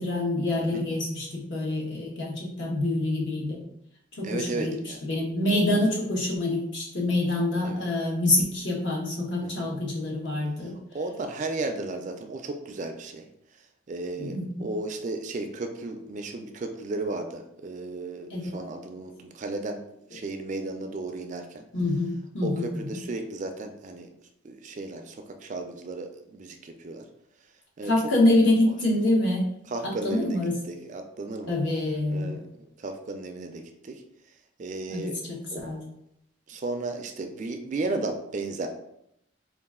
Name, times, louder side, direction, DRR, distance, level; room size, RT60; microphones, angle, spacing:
voice 1, 0.0-3.6 4.2-10.7 14.2-14.4 18.3-18.5 21.7-23.0 27.8-29.5 29.8-30.5 31.5-32.4 34.9-35.4 35.6-35.8, left 1 dB, 60° left, -3 dB, 1.1 m, -26 dB
voice 2, 4.2-5.1 5.5-5.6 7.6-7.9 9.4-9.7 10.6-13.3 13.9-19.8 20.1-21.6 22.4-24.1 24.4-27.0 27.8-27.9 29.7-31.6 32.1-34.0 34.6-35.2 35.5-35.6 36.5-38.7, right 2 dB, 35° right, 6 dB, 0.3 m, -34 dB
3.9 x 2.4 x 3.6 m, 0.78 s
head